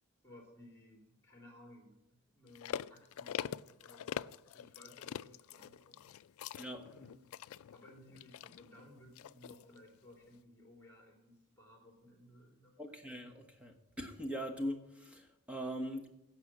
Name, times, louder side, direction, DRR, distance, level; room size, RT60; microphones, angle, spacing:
voice 1, 0.2-4.2 4.5-6.0 6.9-7.3 7.7-13.0, left 1 dB, 10° left, 0 dB, 3.0 m, -59 dB
sound 1, 2.5-9.8 10.3-10.4, left 9 dB, 80° left, 0.3 m, -44 dB
voice 2, 6.5-6.9 12.8-16.1, equal, 5° right, 2 dB, 1.3 m, -41 dB
16.0 x 5.8 x 6.1 m, 0.86 s
head